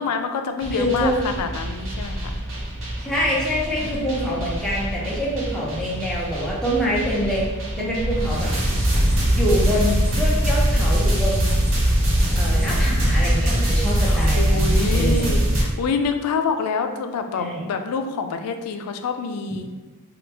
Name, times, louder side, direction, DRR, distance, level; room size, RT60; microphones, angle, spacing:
voice 1, 0.0-2.4 3.8-4.2 7.8-8.4 12.3-19.7, left 5 dB, 90° left, 7 dB, 0.3 m, -28 dB
sound 1, 0.6-15.6, equal, 60° right, 0.8 m, -22 dB
voice 2, 0.7-1.2 3.0-7.5 7.8-8.5 9.3-11.5 12.3-15.5 17.4-17.7, equal, 5° left, -6 dB, 0.6 m, -25 dB
3.0 x 2.2 x 3.2 m, 1.2 s
head